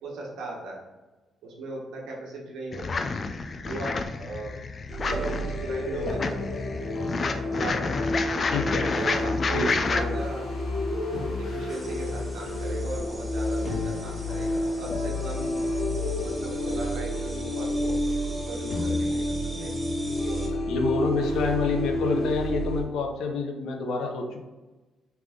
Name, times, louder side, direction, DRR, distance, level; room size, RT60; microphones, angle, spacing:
voice 1, 0.0-0.8 1.4-3.1 3.6-4.6 5.0-6.4 7.5-8.2 8.9-10.5 11.4-15.6 16.1-18.0 18.4-19.7 20.1-20.6, right 2 dB, 80° right, -2 dB, 1.2 m, -37 dB
sound 1, 2.7-10.0, left 4 dB, 40° left, 0.4 m, -30 dB
sound 2, 4.9-22.8, left 1 dB, 60° left, 1.3 m, -30 dB
voice 2, 8.5-8.9 9.5-10.2 20.7-24.4, left 4 dB, 80° left, 4 dB, 0.7 m, -28 dB
sound 3, 11.7-20.5, right 1 dB, 20° right, 0.9 m, -44 dB
3.5 x 3.4 x 3.6 m, 1.2 s
cardioid pair, 90°, 0 cm